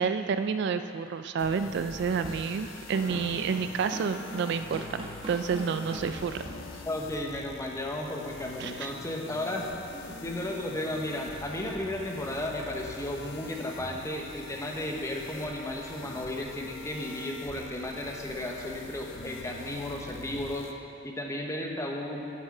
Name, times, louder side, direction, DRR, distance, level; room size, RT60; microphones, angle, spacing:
voice 1, 0.0-6.4 8.6-8.9, right 6 dB, 60° right, 9 dB, 0.3 m, -29 dB
sound 1, 1.4-20.7, left 3 dB, 70° left, 0.6 m, -45 dB
Drum kit / Drum, 2.2-7.1, right 1 dB, 25° right, 1.2 m, -41 dB
voice 2, 6.9-20.7 21.0-22.2, left 1 dB, 15° left, 0 dB, 0.9 m, -34 dB
8.7 x 6.6 x 6.0 m, 2.6 s
head